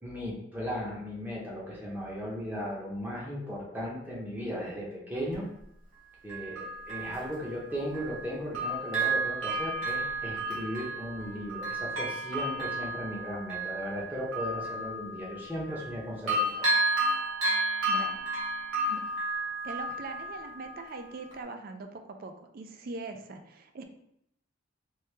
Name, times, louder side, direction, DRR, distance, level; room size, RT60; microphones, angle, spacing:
voice 1, 0.0-5.5 6.2-16.7, equal, 10° right, -4 dB, 0.7 m, -36 dB
Bell, 5.3-5.4 6.3-8.3 8.5-16.0 16.3-20.9 21.3-21.4, right 2 dB, 85° right, 1.2 m, -32 dB
voice 2, 17.9-18.2 18.9-19.0 19.6-23.8, right 3 dB, 45° right, 5 dB, 0.4 m, -41 dB
3.1 x 2.8 x 3.2 m, 0.76 s
head